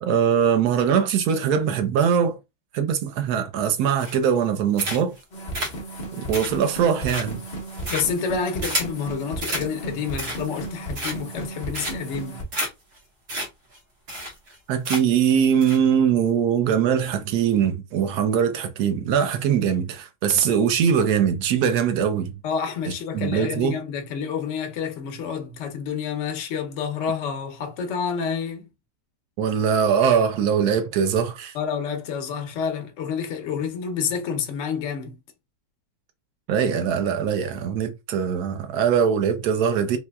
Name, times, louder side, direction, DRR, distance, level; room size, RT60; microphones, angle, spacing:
voice 1, 0.0-2.4 2.7-5.1 6.1-7.4 14.7-22.4 23.1-23.8 29.4-31.5 36.5-40.0, right 7 dB, 70° right, 0.9 m, -22 dB
sound 1, 4.0-4.4 4.8-5.2 5.5-9.0 9.4-9.7 10.0-10.6 10.9-11.4 11.7-12.2 12.5-12.7 13.0-13.1 13.3-13.5 13.7-13.8 14.1-14.6 14.8-15.2 15.6-15.8, right 1 dB, 55° right, 1.6 m, -30 dB
sound 2, 5.3-12.4, right 2 dB, 45° left, 0.8 m, -35 dB
voice 2, 7.9-12.4 22.4-28.7 31.5-35.2, left 6 dB, 90° left, 0.6 m, -29 dB
4.3 x 2.4 x 2.2 m
omnidirectional pair, 2.2 m